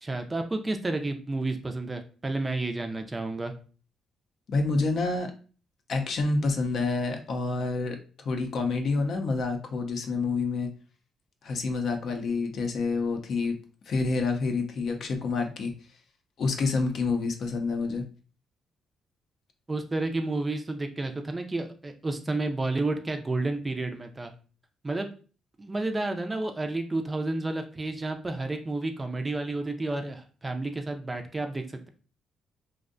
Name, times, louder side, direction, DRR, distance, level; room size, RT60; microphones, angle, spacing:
voice 1, 0.0-3.5 19.7-24.3 24.8-25.1 25.6-31.9, right 2 dB, 20° right, 6 dB, 0.4 m, -31 dB
voice 2, 4.5-5.3 5.9-10.7 11.4-13.6 13.9-15.7 16.4-18.0, left 3 dB, 60° left, 5 dB, 0.5 m, -28 dB
2.5 x 2.1 x 2.5 m, 0.38 s
cardioid pair, 90°, 0 cm